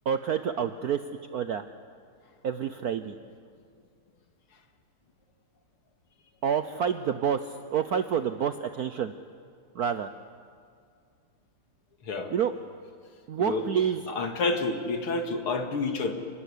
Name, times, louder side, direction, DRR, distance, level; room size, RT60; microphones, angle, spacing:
voice 1, 0.1-1.0 1.3-1.6 2.4-3.1 6.4-7.4 7.7-9.1 9.8-10.1 12.3-12.5 13.3-14.0, right 8 dB, 70° right, 10 dB, 0.9 m, -28 dB
voice 2, 14.1-16.1, left 3 dB, 80° left, 5 dB, 2.8 m, -29 dB
29.0 x 13.0 x 9.9 m, 2.2 s
omnidirectional pair, 2.4 m